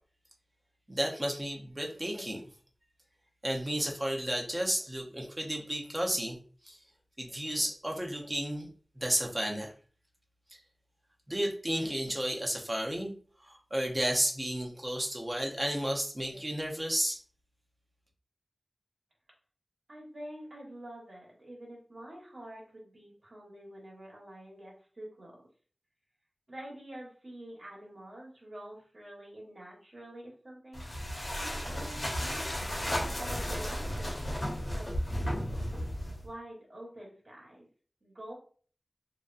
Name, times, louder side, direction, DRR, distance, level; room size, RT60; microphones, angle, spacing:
voice 1, 0.9-2.4 3.4-6.4 6.6-6.8 7.2-8.7 9.0-9.7 11.3-13.1 13.4-17.2, equal, 20° right, 1 dB, 0.6 m, -32 dB
voice 2, 19.9-25.5 26.5-30.8 31.4-35.7 36.2-37.7 38.0-38.3, right 1 dB, 55° right, -3 dB, 1.1 m, -47 dB
sound 1, 30.7-36.3, equal, 50° left, 0.9 m, -34 dB
2.5 x 2.2 x 2.4 m, 0.42 s
wide cardioid pair, 55°, 0 cm